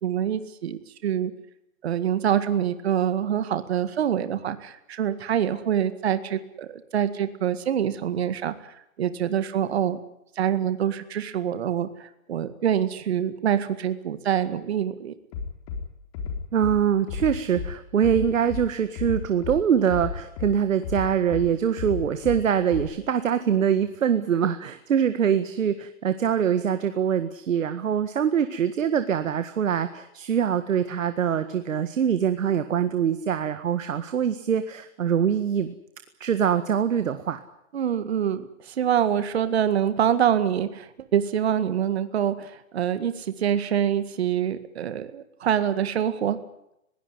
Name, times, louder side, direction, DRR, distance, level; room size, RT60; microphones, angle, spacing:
voice 1, 0.0-1.3 1.8-10.0 10.4-15.1 37.7-46.4, right 9 dB, 50° right, 11 dB, 2.0 m, -25 dB
Bass drum, 15.3-15.8 16.1-16.7 17.1-17.7 18.0-18.6 18.9-19.6 19.9-20.5 20.8-21.4 21.8-22.4 22.7-22.8, left 6 dB, 25° left, 4.2 m, -32 dB
voice 2, 16.5-35.7 36.2-37.4, right 8 dB, 70° right, 10 dB, 1.8 m, -24 dB
21.5 x 17.5 x 9.7 m, 0.81 s
hypercardioid pair, 170°, 41 cm